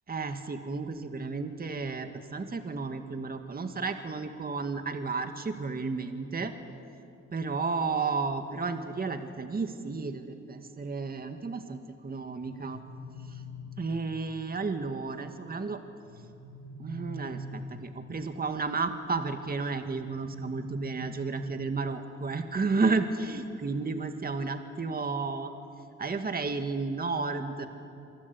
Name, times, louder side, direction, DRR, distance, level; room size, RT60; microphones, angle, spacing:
voice 1, 0.1-6.5 7.3-12.8 13.3-13.4 13.8-15.8 16.8-25.5 26.0-27.7, right 4 dB, 30° right, 7 dB, 2.0 m, -32 dB
sound 1, 12.3-14.4 16.0-18.1 19.7-21.7, left 1 dB, 80° right, 4.5 m, -44 dB
28.0 x 24.5 x 8.6 m, 2.6 s
cardioid pair, 90°, 30 cm